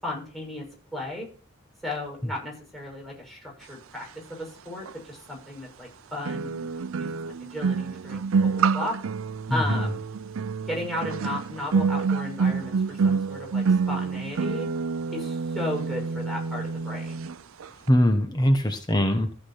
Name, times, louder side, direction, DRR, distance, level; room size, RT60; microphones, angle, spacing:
voice 1, 0.0-0.6 0.9-1.3 1.8-9.0 9.5-10.0 10.7-14.7 15.1-17.3, left 1 dB, ahead, -3 dB, 6.8 m, -35 dB
sound 1, 4.9-5.0 6.2-17.3 17.6-17.9, right 5 dB, 75° right, 0.5 m, -27 dB
voice 2, 9.5-9.9 17.9-19.3, equal, 20° left, 6 dB, 1.2 m, -22 dB
15.0 x 6.0 x 5.9 m, 0.40 s
head